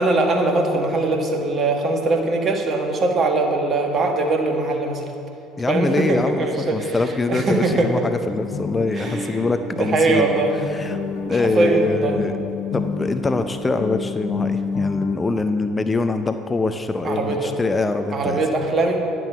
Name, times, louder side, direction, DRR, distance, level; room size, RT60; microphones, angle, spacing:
voice 1, 0.0-5.0 5.7-7.0 7.3-7.9 8.9-9.4 9.7-10.6 11.3-12.1 17.0-17.5 18.1-19.0, right 2 dB, 40° right, 3 dB, 1.5 m, -21 dB
voice 2, 5.6-10.3 10.7-11.0 11.3-12.3 12.7-18.4, left 3 dB, 20° left, 9 dB, 0.5 m, -24 dB
sound 1, 8.3-15.2, left 5 dB, 55° left, 1.0 m, -29 dB
10.5 x 7.7 x 5.7 m, 2.6 s
figure-of-eight pair, 60°, 0 cm